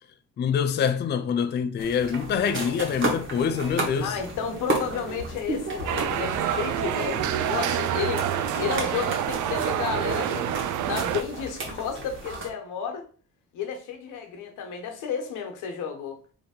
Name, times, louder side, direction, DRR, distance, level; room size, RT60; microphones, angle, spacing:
voice 1, 0.4-4.2, left 7 dB, 35° left, 0.4 m, -25 dB
sound 1, 1.8-12.5, right 2 dB, 40° right, 1.6 m, -33 dB
voice 2, 4.0-8.2 8.6-10.5 10.9-13.0 13.5-16.2, left 7 dB, 85° left, 1.0 m, -32 dB
sound 2, 5.9-11.2, right 10 dB, 75° right, 0.5 m, -27 dB
3.2 x 2.9 x 4.3 m
cardioid pair, 90°, 30 cm